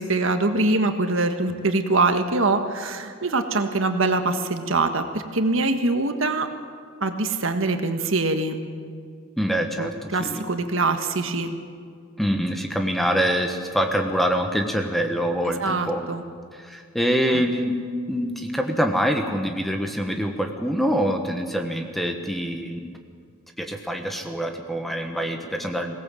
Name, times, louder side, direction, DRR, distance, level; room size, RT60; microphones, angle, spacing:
voice 1, 0.0-6.5 7.0-8.6 9.8-11.5 15.6-16.2 17.3-17.4, right 3 dB, 70° right, 7 dB, 1.5 m, -23 dB
voice 2, 9.4-10.4 12.2-16.0 16.6-17.8 18.1-22.9 23.6-26.0, equal, ahead, 4 dB, 1.4 m, -25 dB
22.0 x 18.0 x 7.7 m, 2.1 s
head